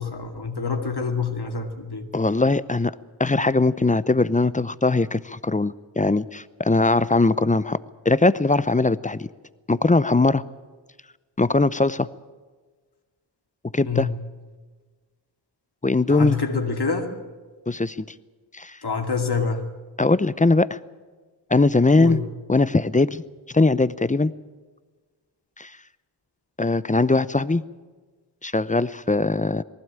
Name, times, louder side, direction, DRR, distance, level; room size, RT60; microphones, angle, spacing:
voice 1, 0.0-2.1 13.9-14.1 16.1-17.1 18.8-19.7 22.0-22.3, left 5 dB, 55° left, 3 dB, 2.4 m, -26 dB
voice 2, 2.1-2.9 3.2-7.8 8.0-9.3 9.7-10.4 11.4-12.1 13.7-14.1 15.8-16.4 17.7-18.0 18.5-18.8 20.0-20.8 21.5-22.2 22.5-23.2 23.5-24.3 25.6-25.7 26.6-27.6 28.4-29.6, left 3 dB, 15° left, 17 dB, 0.6 m, -20 dB
19.0 x 15.5 x 8.8 m, 1.4 s
cardioid pair, 50°, 46 cm